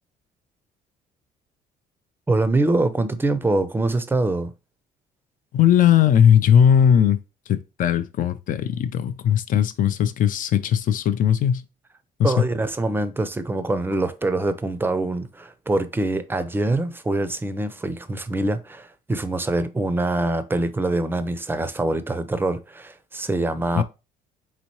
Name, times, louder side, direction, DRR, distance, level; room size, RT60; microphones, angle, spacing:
voice 1, 2.3-4.5 12.2-23.8, right 2 dB, 10° right, 0.5 m, -24 dB
voice 2, 5.5-7.2 7.5-11.6 12.2-12.5 23.8-23.9, left 9 dB, 55° left, 0.5 m, -18 dB
4.1 x 3.7 x 3.0 m
cardioid pair, 110°, 17 cm